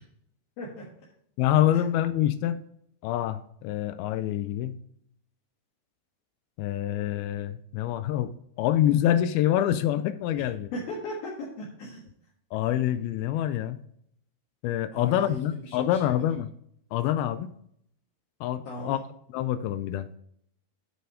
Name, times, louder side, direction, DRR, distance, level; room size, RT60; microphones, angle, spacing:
voice 1, 1.4-2.6 3.0-4.8 6.6-8.3 8.6-10.7 12.5-13.8 14.6-16.5 16.9-17.5 18.4-19.0 19.3-20.1, left 12 dB, 85° left, 12 dB, 2.2 m, -26 dB
voice 2, 10.7-12.0 14.9-16.3 18.6-19.0, left 1 dB, 65° left, -4 dB, 3.1 m, -37 dB
7.8 x 5.6 x 4.9 m, 0.68 s
omnidirectional pair, 4.8 m